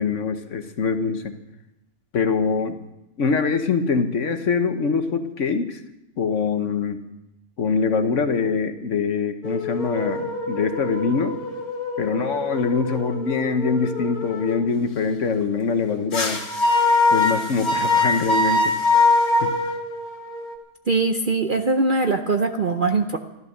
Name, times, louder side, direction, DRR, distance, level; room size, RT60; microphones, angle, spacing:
voice 1, 0.0-1.3 2.1-2.8 3.2-5.8 6.2-7.0 7.6-11.4 12.0-16.4 17.1-18.7 19.4-19.5, left 5 dB, 60° left, 8 dB, 1.3 m, -23 dB
sound 1, 9.4-14.6 16.1-20.6, left 3 dB, 85° left, 2.4 m, -23 dB
voice 2, 20.9-23.2, right 3 dB, 45° right, 6 dB, 0.7 m, -21 dB
14.0 x 12.0 x 6.6 m, 0.91 s
omnidirectional pair, 1.6 m